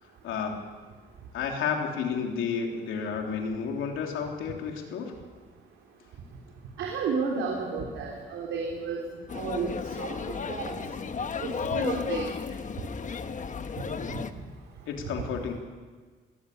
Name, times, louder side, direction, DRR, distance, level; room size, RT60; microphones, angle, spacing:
voice 1, 0.2-0.7 1.3-5.1 14.9-15.5, left 6 dB, 85° left, 2 dB, 3.4 m, -31 dB
voice 2, 6.8-9.1 9.3-10.9 11.4-12.3 14.1-14.2, right 4 dB, 80° right, -1 dB, 3.5 m, -32 dB
sound 1, 9.3-14.3, left 5 dB, 40° left, 1.2 m, -34 dB
22.0 x 17.5 x 6.8 m, 1.5 s
cardioid pair, 90°, 20 cm